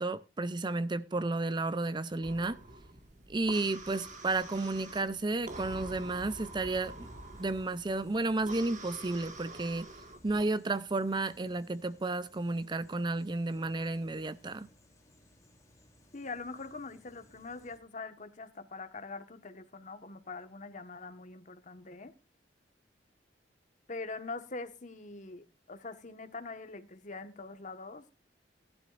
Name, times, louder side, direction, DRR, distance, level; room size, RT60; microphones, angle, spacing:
voice 1, 0.0-2.6 3.3-7.1 7.4-9.9 10.2-14.7, right 2 dB, 25° right, 0.5 m, -32 dB
sound 1, 2.2-10.5, right 2 dB, 45° right, 1.9 m, -47 dB
sound 2, 3.8-17.8, left 1 dB, 20° left, 3.1 m, -63 dB
voice 2, 16.1-22.1 23.9-28.1, left 3 dB, 45° left, 1.4 m, -43 dB
18.0 x 11.5 x 2.5 m
head